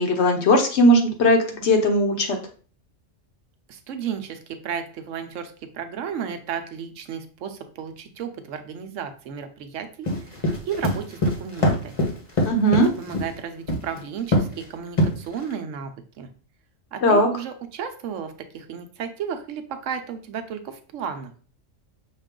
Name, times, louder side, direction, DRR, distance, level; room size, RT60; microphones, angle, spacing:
voice 1, 0.0-2.4 12.5-12.9 17.0-17.3, equal, 60° left, 4 dB, 1.0 m, -18 dB
voice 2, 3.7-12.1 13.0-16.3 16.9-21.3, right 7 dB, 75° right, 8 dB, 0.9 m, -33 dB
sound 1, 10.1-13.3 13.7-14.0 14.3-14.6 15.0-15.5, left 1 dB, 30° left, 0.9 m, -22 dB
5.9 x 2.4 x 3.6 m, 0.40 s
omnidirectional pair, 1.4 m